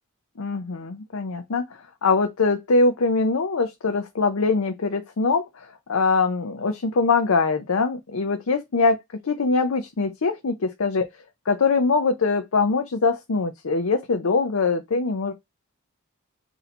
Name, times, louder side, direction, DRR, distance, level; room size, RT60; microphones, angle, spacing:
voice 1, 0.4-1.7 2.0-9.0 9.2-11.1 11.5-15.3, left 4 dB, 70° left, 0.6 m, -22 dB
4.2 x 2.8 x 3.8 m
head